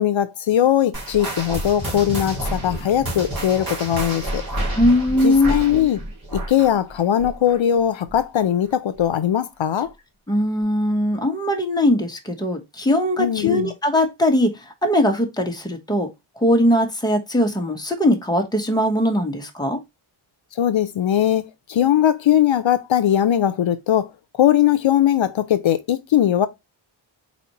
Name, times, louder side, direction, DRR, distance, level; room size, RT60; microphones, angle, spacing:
voice 1, 0.0-4.4 5.2-6.0 6.3-9.9 13.2-13.7 20.6-24.1 24.4-26.5, left 10 dB, 70° left, 0.6 m, -20 dB
sound 1, 0.9-7.8 8.1-8.4 9.0-9.1 9.9-10.0, right 1 dB, 45° right, 2.5 m, -29 dB
voice 2, 4.7-5.5 10.3-16.1 16.4-19.8, left 1 dB, 10° left, 1.1 m, -20 dB
4.2 x 4.2 x 2.9 m
wide cardioid pair, 155°, 49 cm